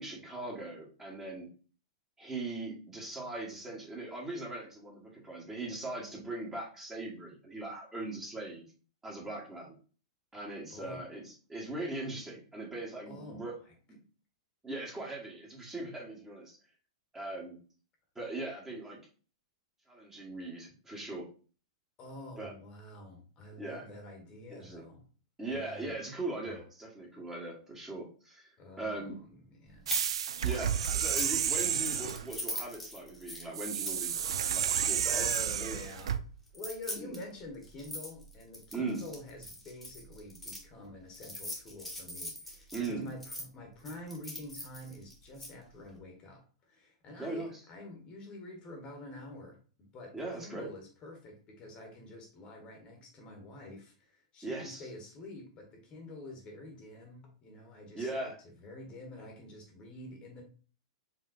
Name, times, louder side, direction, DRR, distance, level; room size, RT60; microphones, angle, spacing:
voice 1, 0.0-1.5 2.2-8.6 9.0-9.7 10.3-13.6 13.9-14.0 14.6-16.6 17.1-17.6 18.1-19.0 19.9-21.3 22.4-22.5 23.6-23.8 24.5-24.8 25.4-28.5 28.8-29.2 30.4-35.3 35.6-35.8 37.0-37.2 38.7-39.1 42.7-43.1 47.2-47.6 50.1-50.7 54.4-54.9 57.9-58.3, right 2 dB, 15° right, 1.5 m, -40 dB
voice 2, 10.7-11.1 13.1-13.5 22.0-25.0 25.5-25.9 26.4-26.6 28.6-29.9 30.7-30.9 35.0-36.2 36.5-60.4, left 2 dB, 30° left, 1.3 m, -47 dB
sound 1, 29.9-30.1 30.4-35.7 36.5-40.6 41.1-43.4 43.9-45.5, left 1 dB, 5° left, 1.4 m, -41 dB
sound 2, 29.9-32.3 33.5-36.2, right 8 dB, 75° right, 0.3 m, -31 dB
4.8 x 3.2 x 2.6 m
hypercardioid pair, 110°, 3 cm